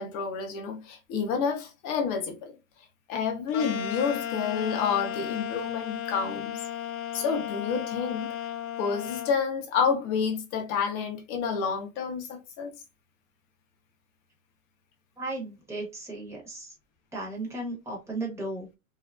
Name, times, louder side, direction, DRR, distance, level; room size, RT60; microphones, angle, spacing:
voice 1, 0.0-2.5 3.1-6.6 7.1-8.3 8.8-12.7, left 6 dB, 25° left, 0.4 m, -29 dB
sound 1, 3.5-9.4, left 10 dB, 80° left, 0.6 m, -34 dB
voice 2, 15.2-16.7 17.1-18.7, right 2 dB, 5° right, 0.8 m, -35 dB
2.7 x 2.4 x 2.2 m
supercardioid pair, 145°, 41 cm